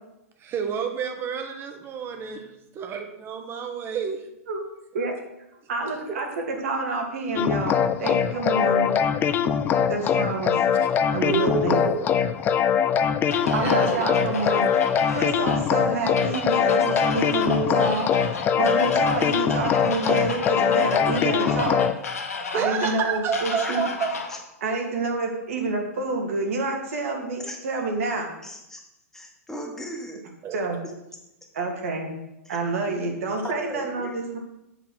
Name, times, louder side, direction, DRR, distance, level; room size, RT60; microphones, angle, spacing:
voice 1, 0.4-2.5 2.8-4.2 11.3-12.1 13.4-14.5 22.5-24.1 30.4-30.6, right 6 dB, 30° right, 5 dB, 1.2 m, -29 dB
voice 2, 5.7-7.7 8.0-9.0 9.9-10.6 11.1-11.8 13.5-21.8 22.5-23.8 24.6-28.3 30.5-30.8 31.5-32.1 32.5-34.4, right 3 dB, 60° right, 2 dB, 2.1 m, -28 dB
sound 1, 7.4-21.9, left 7 dB, 25° left, 0.4 m, -23 dB
sound 2, 13.3-24.4, left 5 dB, 75° left, 1.1 m, -32 dB
voice 3, 28.4-28.8 29.1-30.2 32.4-32.6 33.4-34.1, equal, 5° left, 0 dB, 1.5 m, -37 dB
7.9 x 4.1 x 6.1 m, 0.88 s
figure-of-eight pair, 110°, 8 cm